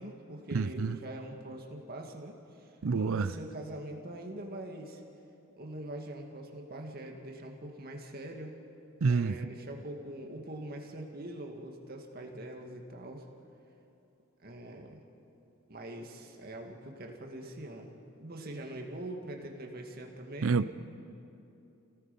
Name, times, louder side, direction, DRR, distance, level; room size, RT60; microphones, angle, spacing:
voice 1, 0.0-5.0 5.6-8.5 9.1-13.3 14.4-15.0 15.7-20.7, right 1 dB, 45° right, 2.0 m, -43 dB
voice 2, 0.5-1.0 2.8-3.3 9.0-9.3 20.4-20.7, right 4 dB, 75° right, 0.6 m, -28 dB
29.5 x 17.5 x 5.4 m
head